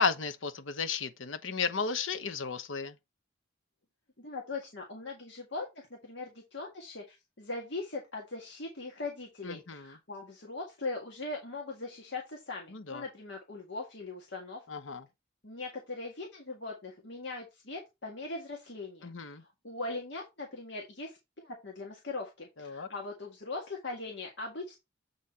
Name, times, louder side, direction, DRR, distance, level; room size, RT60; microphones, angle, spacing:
voice 1, 0.0-2.9 9.4-9.9 12.7-13.0 14.7-15.0 19.0-19.4 22.6-22.9, left 5 dB, 80° left, 1.0 m, -33 dB
voice 2, 4.2-14.6 15.4-19.3 19.6-24.8, left 3 dB, 65° left, 1.8 m, -40 dB
8.0 x 4.2 x 4.2 m
head